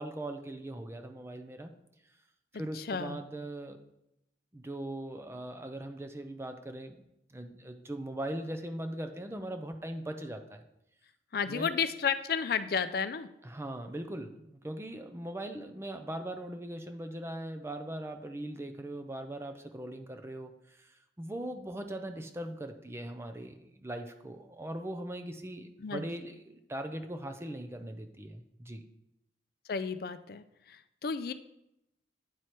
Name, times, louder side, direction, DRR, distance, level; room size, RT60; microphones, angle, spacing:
voice 1, 0.0-1.7 2.5-3.8 4.5-7.0 7.3-10.6 11.5-11.8 13.4-28.8, right 1 dB, 15° right, 7 dB, 0.5 m, -40 dB
voice 2, 2.5-3.2 11.3-13.3 25.8-26.0 29.7-31.3, left 6 dB, 60° left, 12 dB, 0.4 m, -32 dB
9.3 x 4.7 x 4.4 m, 0.81 s
head